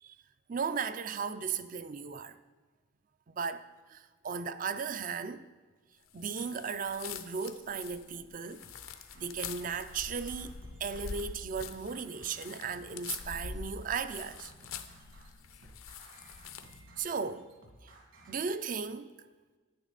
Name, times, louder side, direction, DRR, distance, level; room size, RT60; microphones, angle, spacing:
voice 1, 0.5-2.3 3.3-3.6 3.9-5.5 6.1-8.6 9.2-10.5 10.8-14.5 17.0-17.6 17.8-17.9 18.3-19.1, right 5 dB, 40° right, 0.4 m, -36 dB
sound 1, 6.2-16.9, left 6 dB, 80° left, 0.7 m, -45 dB
sound 2, 8.4-18.3, right 1 dB, 65° right, 2.3 m, -57 dB
10.5 x 9.4 x 4.0 m
head